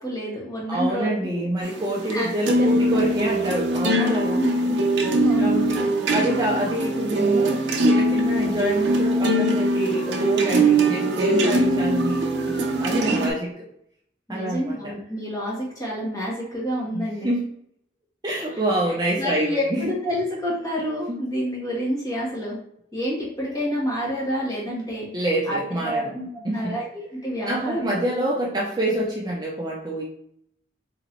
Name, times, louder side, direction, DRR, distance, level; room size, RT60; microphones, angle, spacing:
voice 1, 0.0-1.5 2.1-3.0 4.3-4.8 5.2-5.6 12.9-13.3 14.3-17.3 18.5-18.6 19.2-22.6 22.9-26.8 27.2-27.8, equal, 20° left, -6 dB, 1.5 m, -28 dB
voice 2, 0.7-4.4 5.4-5.8 6.1-13.6 14.3-14.9 16.9-17.5 18.2-19.9 21.1-21.2 25.1-26.1 26.4-26.7 27.5-30.0, right 1 dB, 20° right, -4 dB, 0.6 m, -27 dB
sound 1, 1.6-13.3, right 1 dB, 65° right, 0.7 m, -22 dB
3.9 x 2.9 x 3.0 m, 0.72 s
head